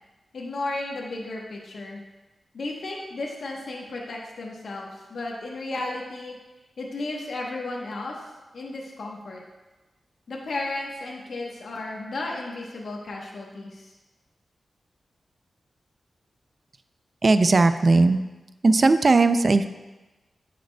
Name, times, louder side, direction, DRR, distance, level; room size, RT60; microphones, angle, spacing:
voice 1, 0.3-2.0 2.5-6.4 6.8-8.2 8.5-9.4 10.3-13.9, left 2 dB, 75° left, -2 dB, 1.0 m, -34 dB
voice 2, 17.2-18.2 18.6-19.7, right 3 dB, 45° right, 10 dB, 0.4 m, -18 dB
10.0 x 5.1 x 2.2 m, 1.1 s
cardioid pair, 70°, 0 cm